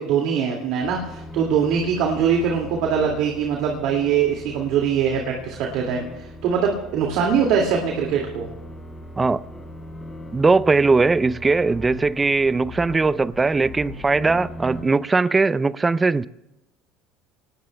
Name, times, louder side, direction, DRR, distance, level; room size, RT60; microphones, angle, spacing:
voice 1, 0.0-6.0 6.4-8.5, right 7 dB, 70° right, 2.2 m, -22 dB
sound 1, 0.8-14.8, equal, 10° left, 7.7 m, -39 dB
voice 2, 10.3-16.3, right 3 dB, 20° right, 0.5 m, -19 dB
25.0 x 19.5 x 2.3 m
supercardioid pair, 90°, 0 cm